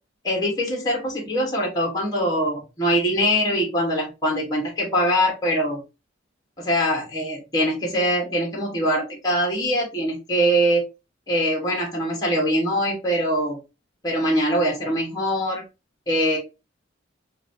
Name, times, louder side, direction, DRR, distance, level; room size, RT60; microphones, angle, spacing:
voice 1, 0.2-5.8 6.6-10.8 11.3-13.6 14.0-15.6 16.1-16.4, equal, 20° left, -2 dB, 1.6 m, -23 dB
5.7 x 2.7 x 2.8 m, 0.26 s
head